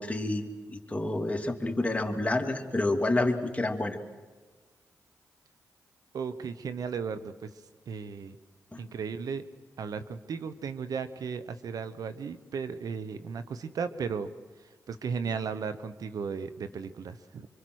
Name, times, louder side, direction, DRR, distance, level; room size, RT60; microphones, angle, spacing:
voice 1, 0.0-4.0 8.7-8.8, left 2 dB, 20° left, 3 dB, 2.9 m, -29 dB
voice 2, 6.1-7.5 7.9-8.4 8.8-9.4 9.8-14.3 14.9-17.5, right 6 dB, 75° right, 11 dB, 1.0 m, -35 dB
25.0 x 24.5 x 6.4 m, 1.3 s
supercardioid pair, 50°, 6 cm